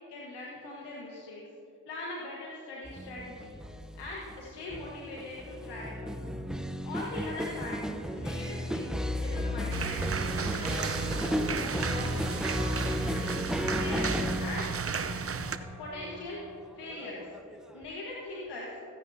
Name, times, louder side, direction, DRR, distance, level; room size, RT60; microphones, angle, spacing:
voice 1, 0.1-1.4 1.8-3.6 4.0-6.2 6.8-7.8 8.1-13.3 13.8-14.7 15.8-18.7, left 2 dB, 85° left, -4 dB, 1.5 m, -41 dB
sound 1, 2.8-17.9, equal, ahead, 0.8 m, -34 dB
sound 2, 9.7-15.6, right 6 dB, 35° right, 0.8 m, -34 dB
21.5 x 9.8 x 2.8 m, 2.7 s
supercardioid pair, 45°, 39 cm